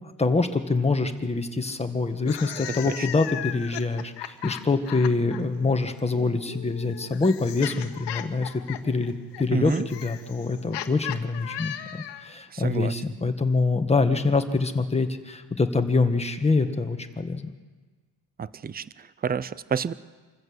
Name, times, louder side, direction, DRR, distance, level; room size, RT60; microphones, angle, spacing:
voice 1, 0.2-17.5, left 3 dB, 15° left, 6 dB, 1.7 m, -25 dB
sound 1, 2.2-5.4 6.5-12.3, left 12 dB, 80° left, 1.5 m, -37 dB
voice 2, 2.7-3.1 9.5-9.9 12.5-12.9 18.4-19.9, right 6 dB, 20° right, 17 dB, 0.6 m, -29 dB
26.5 x 14.5 x 8.0 m, 1.4 s
cardioid pair, 115°, 41 cm